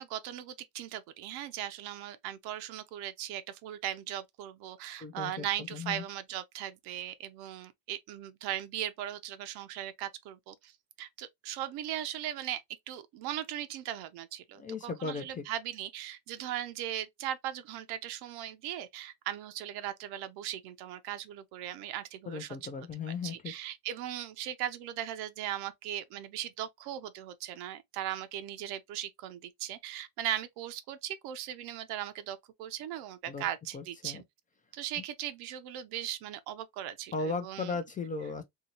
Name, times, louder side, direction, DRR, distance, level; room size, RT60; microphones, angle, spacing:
voice 1, 0.0-12.6 12.9-22.7 23.2-34.2 34.7-37.8, right 12 dB, 70° right, 0.6 m, -38 dB
voice 2, 5.0-6.0 14.6-15.4 22.3-23.5 33.3-33.5 33.7-34.2 37.1-38.4, left 4 dB, 20° left, 0.4 m, -36 dB
2.8 x 2.8 x 2.8 m
cardioid pair, 125°, 40 cm